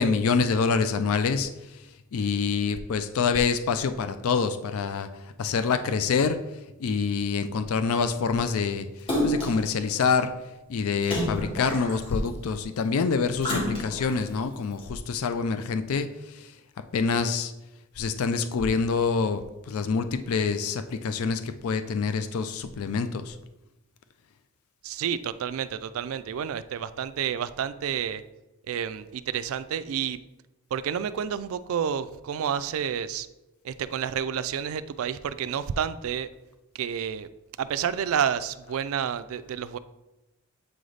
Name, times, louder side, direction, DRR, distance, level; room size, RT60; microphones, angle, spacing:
voice 1, 0.0-1.5 2.1-5.1 5.4-6.4 6.8-8.9 9.2-10.3 10.7-16.1 16.9-17.5 18.0-19.4 19.7-23.3, left 5 dB, 70° left, 10 dB, 0.4 m, -26 dB
Splash splatter, 9.1-9.7 11.0-12.3 13.4-14.2 14.8-14.9, left 1 dB, 25° left, 1.5 m, -28 dB
voice 2, 24.8-28.2 28.7-30.2 30.7-33.3 33.6-36.3 36.7-37.3 37.6-39.8, right 8 dB, 65° right, 14 dB, 0.3 m, -30 dB
7.7 x 3.9 x 3.2 m, 0.97 s
head